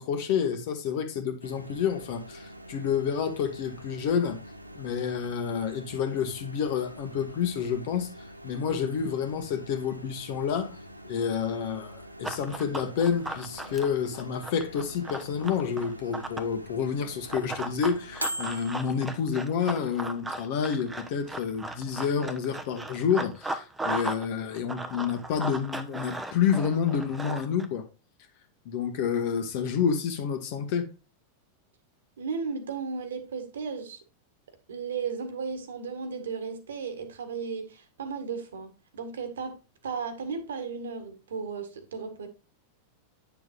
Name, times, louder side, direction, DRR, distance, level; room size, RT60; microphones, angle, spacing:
voice 1, 0.0-4.4 4.7-8.1 8.4-10.8 11.0-27.9 28.7-30.9, left 7 dB, 50° left, 1.6 m, -29 dB
Microwave oven, 1.4-19.2, right 1 dB, 85° right, 0.8 m, -44 dB
Run, 12.2-16.5 17.3-24.3 24.5-27.7, right 2 dB, 10° right, 1.0 m, -36 dB
voice 2, 32.2-34.0 34.7-42.3, right 5 dB, 65° right, 1.7 m, -35 dB
9.5 x 6.7 x 2.5 m
figure-of-eight pair, 90°, 0 cm